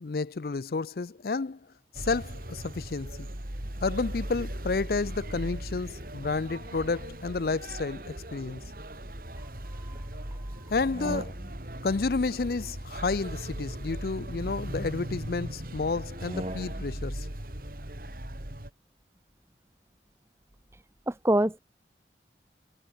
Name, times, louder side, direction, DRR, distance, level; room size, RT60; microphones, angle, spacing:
voice 1, 0.0-1.6 2.0-3.3 3.8-8.6 10.7-11.3 11.8-17.3, left 4 dB, 55° left, 0.5 m, -31 dB
sound 1, 1.9-18.7, right 1 dB, 55° right, 3.3 m, -38 dB
sound 2, 10.7-11.8 13.1-14.7 16.0-17.1, right 1 dB, 35° right, 3.3 m, -41 dB
voice 2, 21.1-21.6, right 1 dB, 15° right, 0.7 m, -25 dB
head